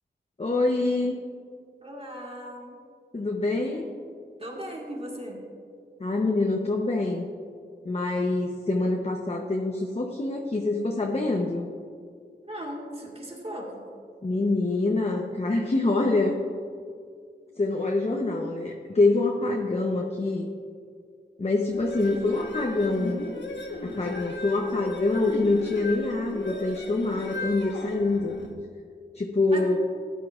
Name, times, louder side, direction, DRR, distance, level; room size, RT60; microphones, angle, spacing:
voice 1, 0.4-1.2 3.1-3.9 6.0-7.3 7.8-11.7 14.2-16.4 17.6-20.5 21.4-23.2 23.8-28.4 29.1-29.8, left 2 dB, 35° left, 1 dB, 0.8 m, -25 dB
voice 2, 1.8-2.7 3.6-3.9 4.4-5.4 12.4-13.8 29.5-29.6, right 1 dB, 30° right, -1 dB, 1.7 m, -37 dB
sound 1, 21.7-28.5, left 2 dB, 80° left, 1.1 m, -36 dB
13.5 x 10.0 x 2.4 m, 2.2 s
wide cardioid pair, 65°, 19 cm